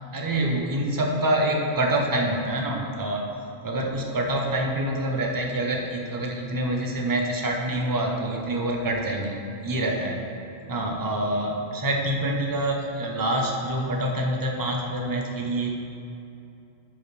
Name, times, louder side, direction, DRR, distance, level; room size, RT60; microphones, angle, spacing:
voice 1, 0.1-3.3 3.6-10.3 10.7-15.7, right 1 dB, 20° right, 0 dB, 0.7 m, -26 dB
10.5 x 5.4 x 3.3 m, 2.7 s
omnidirectional pair, 1.1 m